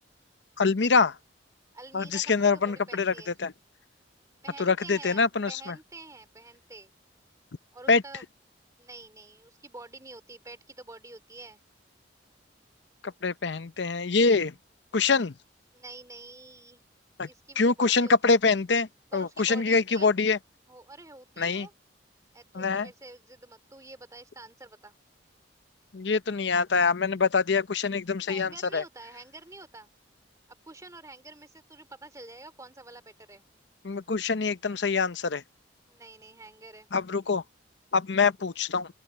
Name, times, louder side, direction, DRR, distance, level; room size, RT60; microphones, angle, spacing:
voice 1, 0.6-1.2 1.9-3.1 3.4-3.5 4.6-5.8 7.9-8.0 13.0-14.5 14.9-15.3 17.2-17.3 17.6-20.4 21.4-21.7 22.5-22.9 25.9-28.8 33.8-35.4 36.9-37.4 37.9-38.9, left 4 dB, 70° left, 0.7 m, -25 dB
voice 2, 1.7-3.4 4.4-6.9 7.7-8.2 8.8-11.6 15.7-16.8 17.2-18.4 19.1-20.1 20.7-21.7 22.3-24.9 28.3-29.9 30.6-33.4 35.9-36.9, right 2 dB, 20° right, 2.6 m, -47 dB
open air
head